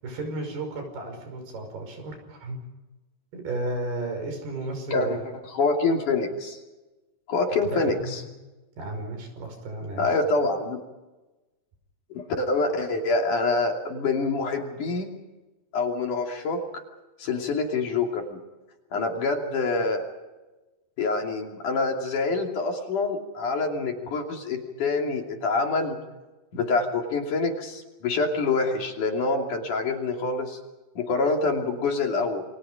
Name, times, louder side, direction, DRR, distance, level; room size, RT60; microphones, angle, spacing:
voice 1, 0.0-2.6 3.3-5.2 7.7-8.3 8.8-10.1, right 2 dB, 75° right, 5 dB, 7.5 m, -33 dB
voice 2, 5.5-6.6 7.3-8.2 10.0-10.8 12.1-15.1 15.7-16.6 17.2-18.4 18.9-20.1 21.0-26.0 26.5-30.6 31.0-32.4, left 3 dB, 55° left, 2 dB, 4.1 m, -26 dB
29.0 x 23.0 x 5.2 m, 1.1 s
omnidirectional pair, 4.6 m